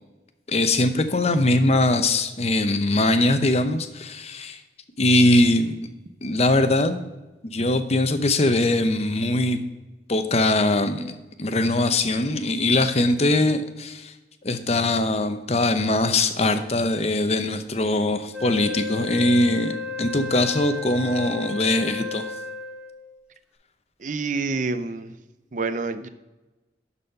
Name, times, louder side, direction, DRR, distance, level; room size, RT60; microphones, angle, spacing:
voice 1, 0.5-4.6 5.0-5.8 6.2-7.0 7.4-9.6 10.1-14.1 14.4-22.3, left 2 dB, 35° left, 9 dB, 0.7 m, -21 dB
Wind instrument woodwind instrument, 18.3-23.1, left 4 dB, 5° right, 1.2 m, -33 dB
voice 2, 24.0-25.2 25.5-26.1, right 3 dB, 45° right, 11 dB, 0.6 m, -27 dB
12.0 x 4.2 x 5.4 m, 1.1 s
head